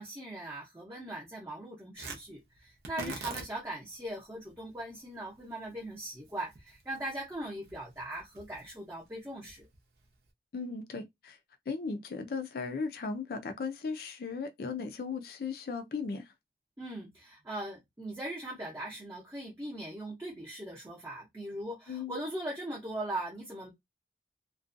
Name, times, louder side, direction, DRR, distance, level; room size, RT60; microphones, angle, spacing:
voice 1, 0.0-9.6 16.8-23.7, right 1 dB, 15° right, 0.6 m, -40 dB
Tearing, 1.9-10.3, right 4 dB, 65° right, 0.7 m, -48 dB
voice 2, 10.5-11.4 11.7-16.3 21.9-22.2, left 4 dB, 55° left, 0.4 m, -37 dB
2.5 x 2.2 x 2.5 m
head